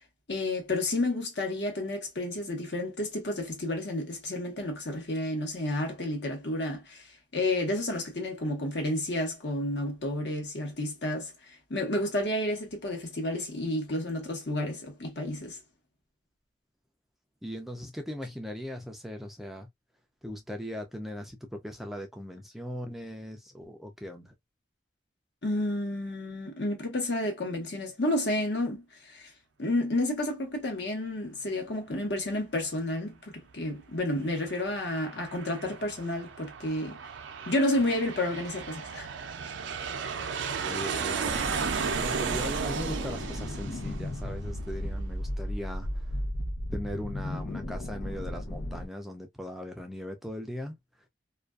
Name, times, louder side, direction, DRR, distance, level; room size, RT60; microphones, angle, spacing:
voice 1, 0.3-7.1 7.3-15.6 25.4-29.3 29.6-37.0 37.5-39.1, left 1 dB, 65° left, 1.0 m, -31 dB
voice 2, 17.4-19.7 20.2-24.3 40.6-41.4 41.9-45.9 46.7-50.8, equal, ahead, 0.3 m, -39 dB
Aircraft, 34.1-45.3, right 6 dB, 80° right, 0.4 m, -35 dB
sound 1, 41.2-48.9, left 1 dB, 85° left, 0.7 m, -35 dB
2.4 x 2.2 x 2.3 m
head